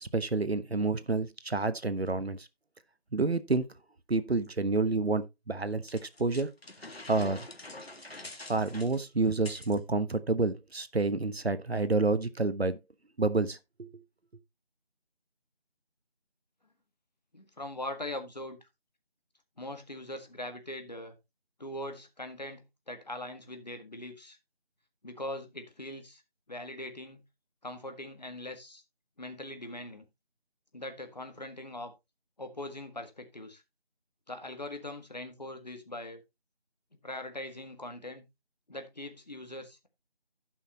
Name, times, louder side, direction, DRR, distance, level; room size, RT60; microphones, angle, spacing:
voice 1, 0.0-2.5 3.1-3.7 4.1-6.5 7.1-7.5 8.5-12.8 13.2-13.9, right 3 dB, 80° right, 1.1 m, -29 dB
sound 1, 5.9-9.8, left 2 dB, 75° left, 1.7 m, -45 dB
voice 2, 17.3-18.6 19.6-21.1 21.6-24.4 25.0-26.2 26.5-27.2 27.6-28.8 29.2-30.1 30.7-31.9 32.4-33.6 34.3-36.2 37.0-38.2 38.7-39.9, left 1 dB, 45° left, 1.7 m, -41 dB
16.0 x 5.8 x 2.8 m
figure-of-eight pair, 170°, 31 cm